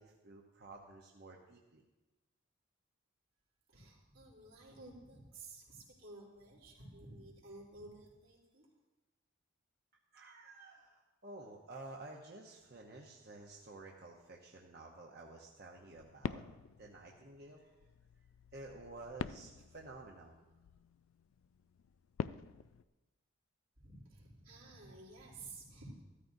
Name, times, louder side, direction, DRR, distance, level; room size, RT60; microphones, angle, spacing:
voice 1, 0.0-1.8 10.1-16.4 16.8-17.9 18.5-20.4, right 2 dB, 50° right, -1 dB, 0.8 m, -52 dB
voice 2, 3.7-8.7 23.8-26.0, right 2 dB, 80° right, -5 dB, 3.3 m, -53 dB
sound 1, 15.8-22.9, left 6 dB, 80° left, 0.3 m, -47 dB
14.5 x 13.0 x 2.7 m, 1.1 s
head